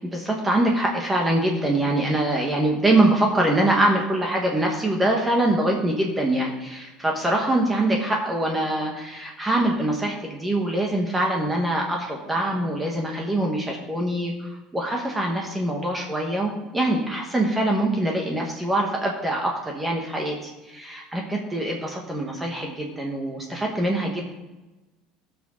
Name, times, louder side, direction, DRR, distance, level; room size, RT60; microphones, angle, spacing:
voice 1, 0.1-24.3, right 1 dB, 10° right, 0 dB, 1.3 m, -24 dB
18.5 x 6.2 x 3.8 m, 1.1 s
cardioid pair, 165°, 0 cm